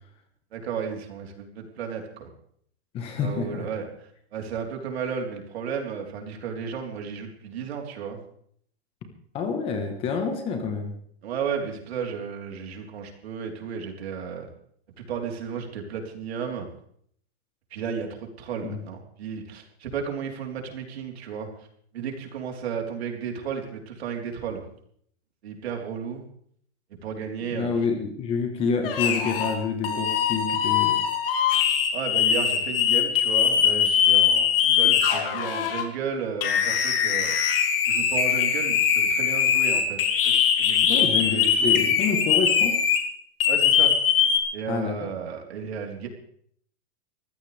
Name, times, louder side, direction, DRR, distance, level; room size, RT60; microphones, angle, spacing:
voice 1, 0.5-2.3 3.2-8.2 11.2-14.5 15.0-16.7 17.7-21.7 21.9-24.6 25.4-26.2 26.9-27.9 31.9-37.3 37.8-41.8 43.5-43.9 44.5-46.1, right 6 dB, 65° right, 2 dB, 4.0 m, -33 dB
voice 2, 2.9-3.6 9.3-10.9 18.6-18.8 27.5-31.0 40.9-42.8 44.7-45.1, left 5 dB, 15° left, 5 dB, 1.3 m, -28 dB
sound 1, 28.8-29.6 29.8-35.8 36.4-43.0 43.4-44.4, left 8 dB, 55° left, 3.2 m, -22 dB
23.0 x 15.5 x 3.5 m, 0.64 s
supercardioid pair, 175°, 34 cm